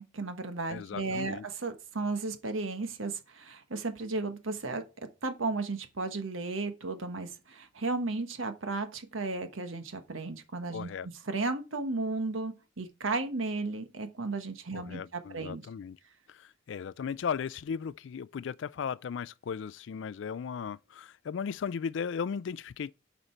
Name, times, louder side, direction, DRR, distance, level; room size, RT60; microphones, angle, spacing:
voice 1, 0.0-4.8 5.2-10.9 11.3-15.6, right 3 dB, 85° right, 1.2 m, -34 dB
voice 2, 0.7-1.5 10.7-11.1 14.7-16.0 16.3-22.9, left 6 dB, 65° left, 0.3 m, -36 dB
8.1 x 5.1 x 4.5 m
head